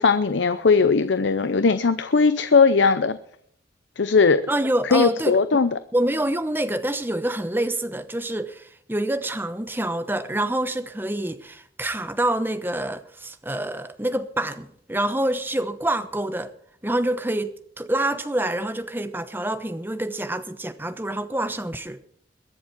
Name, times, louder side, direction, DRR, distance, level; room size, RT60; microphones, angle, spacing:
voice 1, 0.0-3.2 4.0-4.4 4.9-5.7, left 4 dB, 85° left, 0.7 m, -19 dB
voice 2, 4.5-5.7 5.9-16.5 16.8-22.0, right 1 dB, 10° right, 0.9 m, -26 dB
21.5 x 7.3 x 6.0 m
head